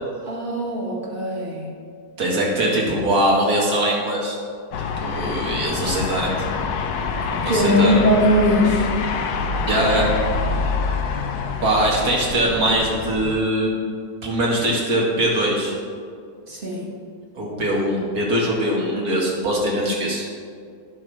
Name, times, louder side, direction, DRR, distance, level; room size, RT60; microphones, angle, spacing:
voice 1, 0.3-1.7 7.3-8.9 16.5-16.9, left 1 dB, 35° right, -3 dB, 1.9 m, -20 dB
voice 2, 2.2-4.4 5.0-6.3 7.3-8.0 9.6-10.1 11.6-13.7 14.2-15.8 17.4-20.3, right 1 dB, 70° right, -3 dB, 2.4 m, -21 dB
sound 1, 4.7-13.4, left 4 dB, 80° left, 1.2 m, -26 dB
15.5 x 6.2 x 3.4 m, 2.2 s
omnidirectional pair, 1.6 m